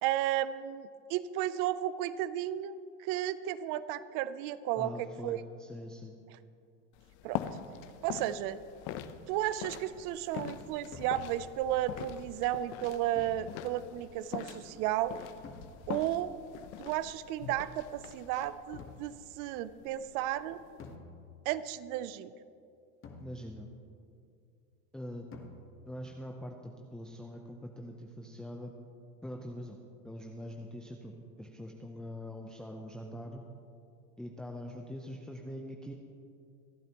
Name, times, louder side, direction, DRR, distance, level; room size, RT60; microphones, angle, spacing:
voice 1, 0.0-5.4 7.2-7.4 8.0-8.6 9.3-15.2 15.9-16.3 16.8-20.6 21.5-22.3, right 12 dB, 50° right, 15 dB, 0.7 m, -33 dB
voice 2, 4.8-6.1 23.2-23.7 24.9-25.3 25.9-28.7 29.2-29.8 30.0-33.4 34.2-35.9, equal, ahead, 1 dB, 0.7 m, -43 dB
sound 1, 6.9-21.0, left 10 dB, 55° left, 0.8 m, -44 dB
sound 2, 8.9-9.5 10.9-11.8 13.1-13.9 15.4-16.1 18.8-19.3 20.8-21.7 23.0-23.8 25.3-26.0, left 3 dB, 30° left, 1.3 m, -51 dB
26.5 x 9.0 x 3.0 m, 2.4 s
supercardioid pair, 120°, 42 cm